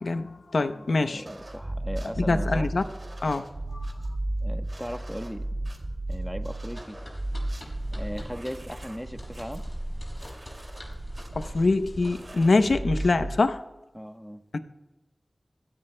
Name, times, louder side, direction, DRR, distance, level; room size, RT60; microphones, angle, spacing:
voice 1, 0.0-1.2 2.2-2.8 3.2-3.4 3.7-3.8 11.3-13.6 14.5-14.6, left 3 dB, 90° left, 9 dB, 0.7 m, -24 dB
voice 2, 0.6-2.7 4.4-5.4 6.1-7.0 7.9-9.6 13.9-14.4, equal, ahead, 7 dB, 1.0 m, -37 dB
sound 1, 1.2-13.4, right 1 dB, 55° right, 2.4 m, -34 dB
sound 2, 6.7-12.5, left 1 dB, 30° left, 6.0 m, -46 dB
27.0 x 17.0 x 2.2 m, 1.1 s
cardioid pair, 40°, 0 cm